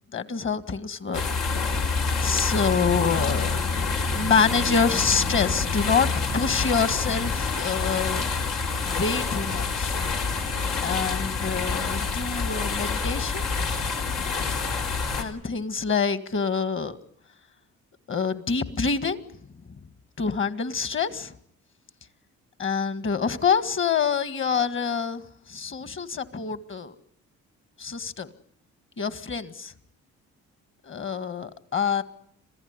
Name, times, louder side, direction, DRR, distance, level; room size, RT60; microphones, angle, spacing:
voice 1, 0.1-1.2 2.2-6.1 6.3-8.3 8.8-9.9 10.8-13.5 15.2-17.0 18.1-19.2 20.2-21.3 22.6-25.2 25.5-26.9 27.8-28.3 29.0-29.7 30.8-32.0, left 5 dB, 40° left, 13 dB, 1.9 m, -26 dB
sound 1, 1.1-15.2, left 4 dB, 90° left, 3.6 m, -27 dB
27.0 x 16.0 x 9.7 m, 0.70 s
cardioid pair, 90°, 30 cm